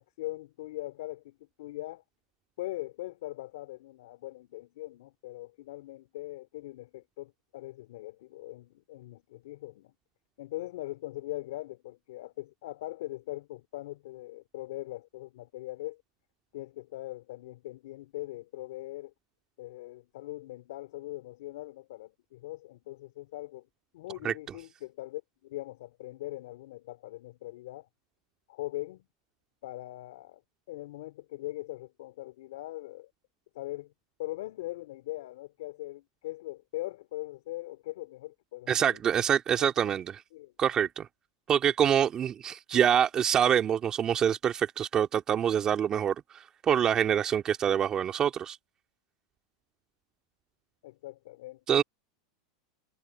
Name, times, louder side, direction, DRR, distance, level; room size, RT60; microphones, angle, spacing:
voice 1, 0.0-2.0 2.6-9.9 10.4-16.0 16.5-19.1 19.6-23.7 23.9-27.9 28.5-29.0 29.6-30.4 30.7-33.1 33.5-33.9 34.2-38.7 39.6-39.7 40.3-40.5 50.8-51.8, left 17 dB, 70° left, 3.2 m, -41 dB
voice 2, 38.7-40.0 40.6-41.1 41.5-48.6 51.7-51.8, right 9 dB, 30° right, 2.2 m, -26 dB
hypercardioid pair, 115°, 2 cm